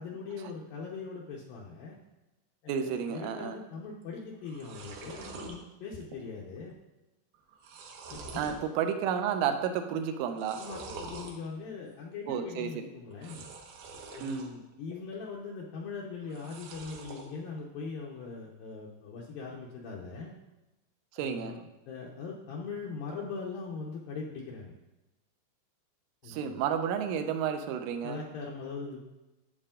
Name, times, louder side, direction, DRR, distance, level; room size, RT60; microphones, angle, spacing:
voice 1, 0.0-2.0 2.6-6.8 8.1-8.5 10.6-13.5 14.1-20.3 21.2-24.7 26.2-26.6 28.0-29.0, left 4 dB, 85° left, -3 dB, 2.0 m, -41 dB
voice 2, 2.7-3.6 8.3-10.6 12.3-12.9 14.2-14.5 21.1-21.6 26.3-28.2, right 8 dB, 85° right, 7 dB, 3.3 m, -31 dB
sound 1, 4.0-4.1 4.3-5.6 6.0-6.4 6.7-6.8 7.3-8.6 9.1-9.5 10.3-11.3 13.1-14.5 14.9-15.5 16.2-17.3, right 3 dB, 70° right, 2.6 m, -45 dB
11.5 x 8.1 x 3.8 m, 1.0 s
omnidirectional pair, 5.6 m